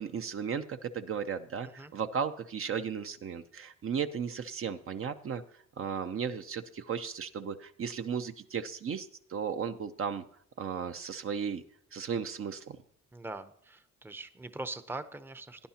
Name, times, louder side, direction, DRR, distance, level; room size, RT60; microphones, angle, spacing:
voice 1, 0.0-5.4 5.8-10.2 10.6-11.6 11.9-12.8, right 7 dB, 45° right, 8 dB, 0.6 m, -35 dB
voice 2, 13.1-15.7, right 2 dB, 5° right, 11 dB, 0.7 m, -42 dB
17.0 x 10.5 x 2.9 m, 0.65 s
cardioid pair, 90°, 30 cm